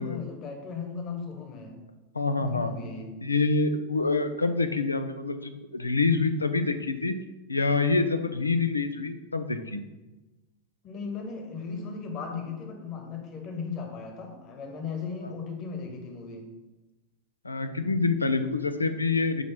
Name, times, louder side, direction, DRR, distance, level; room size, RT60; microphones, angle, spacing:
voice 1, 0.0-1.8 2.4-3.2 10.8-16.5, left 5 dB, 35° left, 3 dB, 1.4 m, -37 dB
voice 2, 2.1-2.7 3.2-7.1 7.5-9.8 15.2-15.3 17.4-19.4, left 3 dB, 80° left, 9 dB, 0.6 m, -26 dB
9.0 x 3.2 x 5.8 m, 1.1 s
figure-of-eight pair, 90°, 0 cm